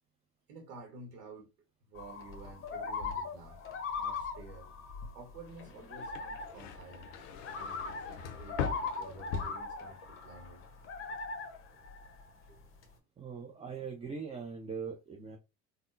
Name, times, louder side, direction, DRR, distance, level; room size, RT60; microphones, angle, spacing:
voice 1, 0.5-1.5 1.9-3.6 3.9-4.7 5.1-7.3 7.6-10.6 11.7-11.8 12.5-12.7, right 3 dB, 65° right, 1.0 m, -51 dB
sound 1, 2.0-12.8, left 4 dB, 30° left, 0.9 m, -41 dB
sound 2, 6.0-10.3 10.6-11.2, left 6 dB, 50° left, 0.6 m, -40 dB
voice 2, 13.2-15.4, right 5 dB, 15° right, 0.5 m, -41 dB
3.5 x 2.2 x 2.6 m
hypercardioid pair, 70°, 46 cm